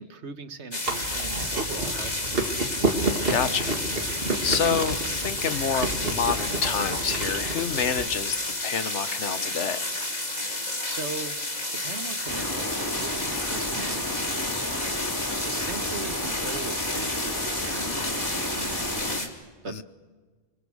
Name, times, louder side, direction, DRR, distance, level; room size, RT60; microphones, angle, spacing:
voice 1, 0.0-2.4 10.4-11.4 11.7-14.6 15.4-19.3 19.6-19.8, right 5 dB, 75° right, 10 dB, 1.5 m, -40 dB
sound 1, 0.7-19.3, left 2 dB, 40° left, 2.6 m, -31 dB
Chewing mastication, 0.8-8.0, right 2 dB, 55° right, 2.5 m, -30 dB
voice 2, 3.3-9.9 19.7-19.8, left 6 dB, 90° left, 12 dB, 1.4 m, -28 dB
sound 2, 12.3-19.2, left 1 dB, 20° left, 2.1 m, -33 dB
28.0 x 21.0 x 6.4 m, 1.4 s
omnidirectional pair, 1.2 m